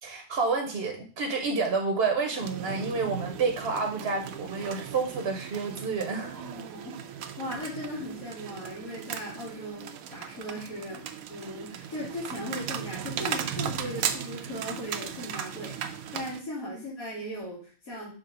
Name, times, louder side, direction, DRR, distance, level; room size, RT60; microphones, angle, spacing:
voice 1, 0.0-6.3 16.7-16.8, right 4 dB, 55° right, 3 dB, 1.0 m, -29 dB
sound 1, 2.4-16.4, right 8 dB, 80° right, 1.0 m, -37 dB
voice 2, 6.2-11.0 11.3-18.1, left 1 dB, 85° left, -9 dB, 2.6 m, -38 dB
6.1 x 3.2 x 5.0 m, 0.41 s
omnidirectional pair, 1.5 m